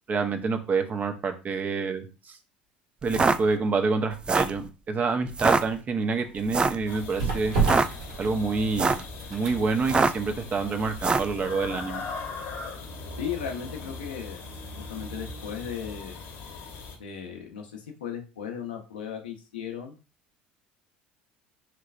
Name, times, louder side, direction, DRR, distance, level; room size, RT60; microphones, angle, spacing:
voice 1, 0.1-2.4 3.0-7.5 8.2-9.0 9.3-12.0, right 4 dB, 35° right, 6 dB, 0.8 m, -27 dB
sound 1, 3.0-3.4 4.1-4.6 5.3-5.6 6.5-6.8 7.5-7.9 8.6-9.1 9.8-10.3 11.0-11.3, right 4 dB, 20° right, 0.4 m, -23 dB
sound 2, 5.9-13.9 14.2-14.4, right 4 dB, 70° right, 1.6 m, -33 dB
sound 3, 6.9-17.0, left 4 dB, 60° left, 1.1 m, -39 dB
voice 2, 13.2-14.4 14.9-16.2 17.0-19.9, left 8 dB, 85° left, 3 dB, 0.8 m, -36 dB
4.5 x 3.1 x 2.5 m, 0.31 s
hypercardioid pair, 70°, 5 cm